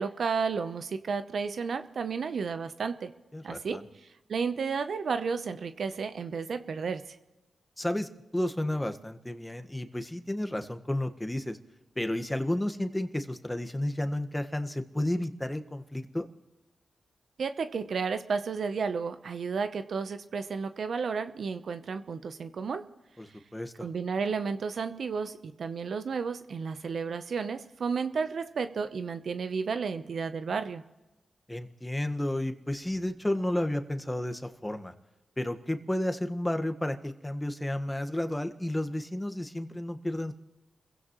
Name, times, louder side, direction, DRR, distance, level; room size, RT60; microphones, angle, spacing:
voice 1, 0.0-3.1 3.4-7.2 17.4-22.9 23.8-30.8, right 5 dB, 70° right, 10 dB, 0.8 m, -32 dB
voice 2, 3.3-3.8 7.8-11.6 11.9-16.3 23.2-23.3 23.5-23.9 31.5-34.9 35.4-40.3, left 1 dB, 15° left, 7 dB, 1.5 m, -32 dB
28.5 x 16.0 x 3.1 m, 1.1 s
supercardioid pair, 45°, 0 cm